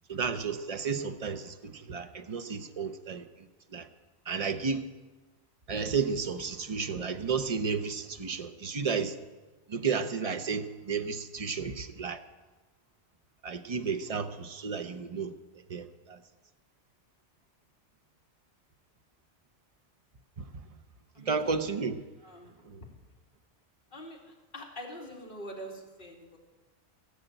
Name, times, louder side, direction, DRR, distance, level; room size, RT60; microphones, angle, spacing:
voice 1, 0.1-3.2 3.7-3.9 4.3-4.8 5.7-9.1 9.7-12.2 13.4-15.3 15.7-16.2 21.3-22.0, right 5 dB, 35° right, 9 dB, 0.7 m, -32 dB
voice 2, 21.2-21.5 22.2-22.5 23.9-24.2 24.5-26.4, equal, 45° left, -2 dB, 2.6 m, -44 dB
17.0 x 6.6 x 9.0 m, 1.3 s
omnidirectional pair, 1.2 m